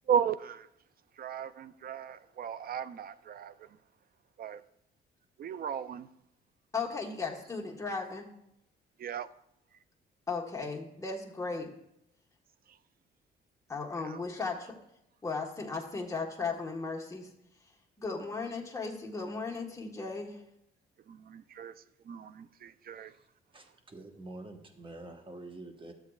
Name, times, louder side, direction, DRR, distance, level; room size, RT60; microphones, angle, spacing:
voice 1, 0.1-0.7 1.2-3.5 4.4-4.6 5.4-6.1 9.0-9.3 14.0-14.2 21.1-21.7 22.1-23.1, right 8 dB, 50° right, 15 dB, 0.4 m, -35 dB
voice 2, 6.7-8.3 10.3-11.7 13.7-14.8 15.2-17.3 18.0-20.4, left 4 dB, 15° left, 0 dB, 1.4 m, -36 dB
voice 3, 23.5-25.9, right 2 dB, 25° right, 5 dB, 1.2 m, -46 dB
12.5 x 7.4 x 2.4 m, 0.79 s
cardioid pair, 90°, 20 cm